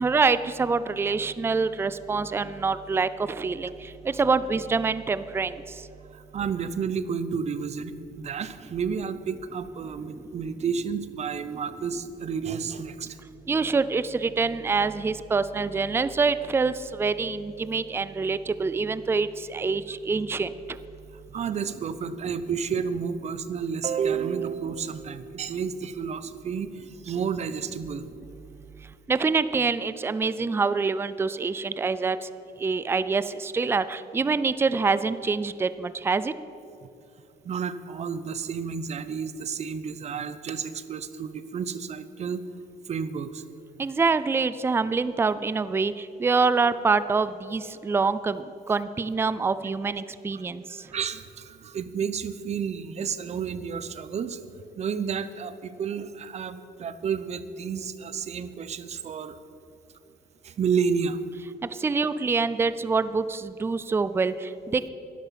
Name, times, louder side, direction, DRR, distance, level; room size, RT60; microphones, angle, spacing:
voice 1, 0.0-5.6 13.5-20.5 29.1-32.2 32.6-36.3 43.8-50.6 61.8-64.9, right 4 dB, 15° right, 14 dB, 0.4 m, -25 dB
voice 2, 6.1-13.2 21.3-28.1 37.4-42.4 42.9-43.4 50.3-50.4 50.8-54.4 54.7-59.4 60.4-61.2, right 6 dB, 40° right, 13 dB, 0.8 m, -31 dB
11.5 x 11.0 x 7.4 m, 2.7 s
cardioid pair, 110°, 17 cm